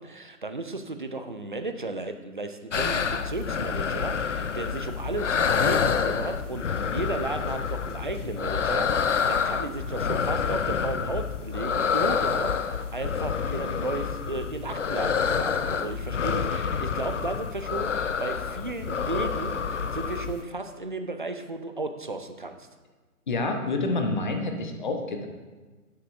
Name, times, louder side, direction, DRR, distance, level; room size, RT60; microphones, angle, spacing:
voice 1, 0.0-22.7, right 2 dB, 35° right, 7 dB, 0.5 m, -34 dB
sound 1, 2.7-20.4, left 6 dB, 55° left, 0.5 m, -28 dB
voice 2, 23.3-25.3, left 3 dB, 30° left, 4 dB, 0.9 m, -28 dB
16.5 x 6.5 x 2.6 m, 1.3 s
figure-of-eight pair, 145°, 45 cm